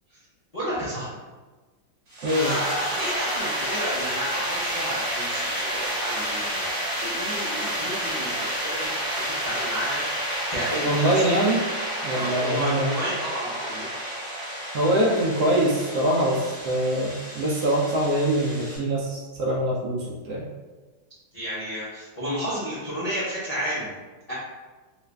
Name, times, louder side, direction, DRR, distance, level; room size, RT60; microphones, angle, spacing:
voice 1, 0.5-1.2 2.3-6.8 7.0-11.2 12.1-13.9 21.3-23.9 24.3-24.4, equal, 55° left, -10 dB, 0.4 m, -32 dB
sound 1, 2.1-18.8, equal, 45° right, 1.1 m, -30 dB
voice 2, 2.2-2.6 10.9-11.6 12.0-12.9 14.7-20.5, right 1 dB, 70° right, -3 dB, 1.0 m, -23 dB
3.1 x 2.4 x 3.2 m, 1.3 s
omnidirectional pair, 2.1 m